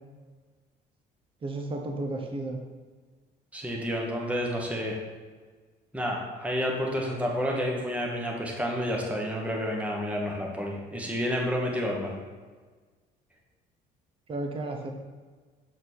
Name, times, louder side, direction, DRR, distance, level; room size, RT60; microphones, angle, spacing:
voice 1, 1.4-2.6 14.3-14.9, right 2 dB, 30° right, 3 dB, 0.8 m, -33 dB
voice 2, 3.5-5.0 5.9-12.2, equal, 10° right, -1 dB, 1.2 m, -30 dB
6.8 x 4.3 x 4.3 m, 1.4 s
cardioid pair, 110°, 17 cm